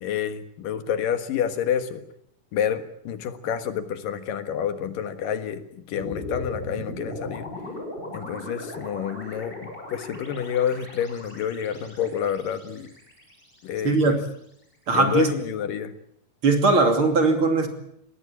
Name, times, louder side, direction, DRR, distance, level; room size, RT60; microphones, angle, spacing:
voice 1, 0.0-2.0 2.5-7.5 8.1-12.9 13.6-14.2 14.9-15.9, left 9 dB, 90° left, 10 dB, 3.3 m, -28 dB
sound 1, 5.9-14.2, left 1 dB, 15° left, 6.0 m, -38 dB
voice 2, 13.8-14.2 14.9-15.3 16.4-17.7, right 3 dB, 40° right, 6 dB, 3.3 m, -19 dB
22.5 x 18.0 x 8.7 m, 0.73 s
omnidirectional pair, 3.8 m